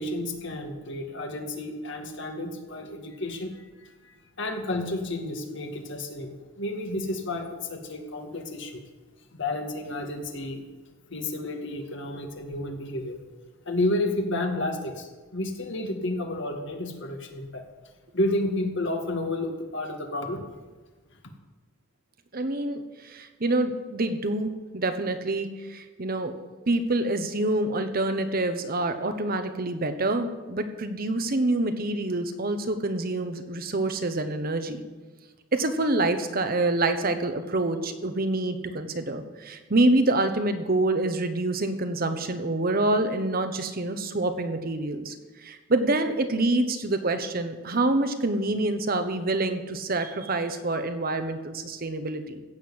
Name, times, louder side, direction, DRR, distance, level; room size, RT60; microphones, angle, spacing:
voice 1, 0.0-8.8 9.3-10.6 11.1-13.2 13.7-17.6 18.1-20.4, left 1 dB, 60° left, 4 dB, 1.9 m, -31 dB
voice 2, 22.3-26.3 26.7-34.8 35.5-45.1 45.4-52.4, right 2 dB, 45° right, 8 dB, 1.1 m, -26 dB
15.0 x 6.7 x 8.6 m, 1.3 s
head